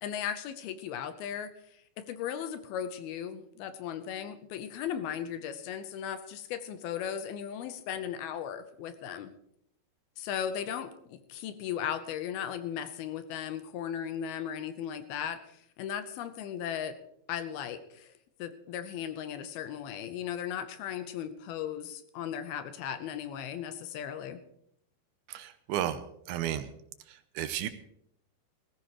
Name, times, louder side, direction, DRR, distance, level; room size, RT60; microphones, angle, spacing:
voice 1, 0.0-1.5 2.0-9.3 10.2-17.0 17.3-18.1 18.4-24.4, left 9 dB, 80° left, 10 dB, 2.7 m, -37 dB
voice 2, 25.3-26.0 26.3-26.7 27.4-27.7, right 11 dB, 80° right, 11 dB, 2.4 m, -32 dB
19.5 x 14.5 x 3.0 m, 0.71 s
omnidirectional pair, 4.6 m